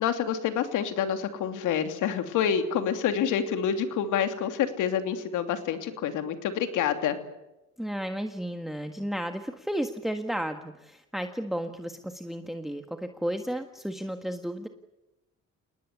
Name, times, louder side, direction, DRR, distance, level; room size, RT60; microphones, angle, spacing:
voice 1, 0.0-7.2, left 8 dB, 85° left, 7 dB, 3.0 m, -27 dB
voice 2, 7.8-14.7, equal, ahead, 6 dB, 1.7 m, -33 dB
28.5 x 19.5 x 8.4 m, 0.98 s
cardioid pair, 90°, 30 cm